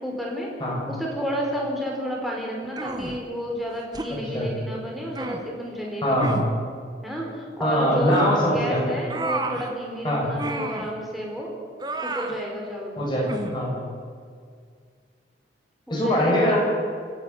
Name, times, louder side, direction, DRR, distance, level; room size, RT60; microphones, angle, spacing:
voice 1, 0.0-0.5 0.9-6.3 7.0-11.5 12.0-13.0 15.9-16.6, equal, ahead, -2 dB, 4.6 m, -31 dB
sound 1, 2.8-3.2 3.9-4.1 5.1-5.4 6.2-6.5 8.1-8.4 9.1-9.7 10.4-10.9 11.8-12.4 13.3-13.6, right 2 dB, 25° right, 1.4 m, -30 dB
voice 2, 6.0-6.4 7.6-8.9 10.0-10.3 13.0-13.8 15.9-16.6, equal, 25° left, -3 dB, 7.2 m, -22 dB
26.5 x 11.0 x 9.6 m, 2.1 s
head